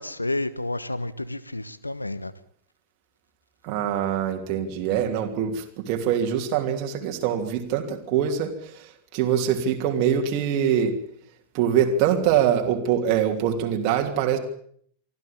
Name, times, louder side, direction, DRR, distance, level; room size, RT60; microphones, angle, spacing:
voice 1, 0.0-2.3, left 2 dB, 85° left, 16 dB, 1.2 m, -30 dB
voice 2, 3.6-11.0 11.5-14.4, right 9 dB, 40° right, 2 dB, 3.1 m, -24 dB
25.0 x 13.5 x 8.8 m, 0.62 s
figure-of-eight pair, 90°, 0 cm